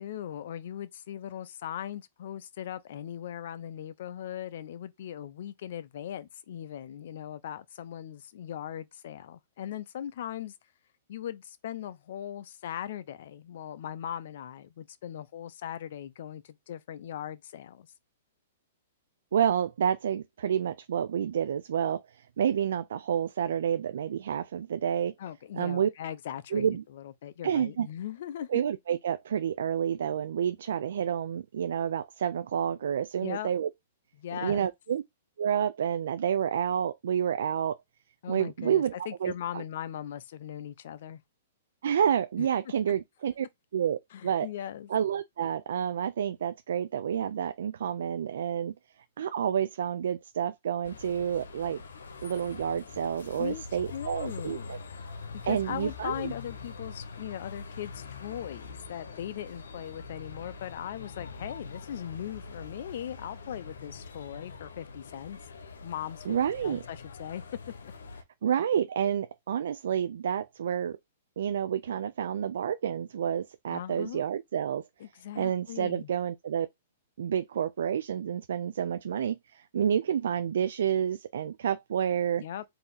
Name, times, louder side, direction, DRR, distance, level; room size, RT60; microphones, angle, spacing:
voice 1, 0.0-10.5 11.1-17.9 25.2-28.6 33.2-33.5 34.2-34.7 38.2-41.2 42.4-42.5 44.1-44.9 53.4-53.6 53.9-54.8 55.4-65.4 65.8-67.4 67.8-67.9 73.7-74.2 75.0-76.1 82.4-82.6, left 10 dB, 65° left, 0.6 m, -39 dB
voice 2, 19.3-25.1 25.6-25.9 26.5-26.8 27.4-27.9 28.5-33.7 34.4-35.0 35.4-37.8 38.3-38.9 39.2-39.6 41.8-43.5 43.7-44.0 44.2-44.5 44.9-48.7 49.2-51.8 52.2-54.8 55.4-56.3 66.3-66.8 68.4-71.0 71.4-74.8 75.4-76.7 77.2-82.4, right 8 dB, 75° right, 0.3 m, -29 dB
sound 1, 50.8-68.2, left 4 dB, 90° left, 0.9 m, -44 dB
3.9 x 2.8 x 3.8 m
hypercardioid pair, 140°, 0 cm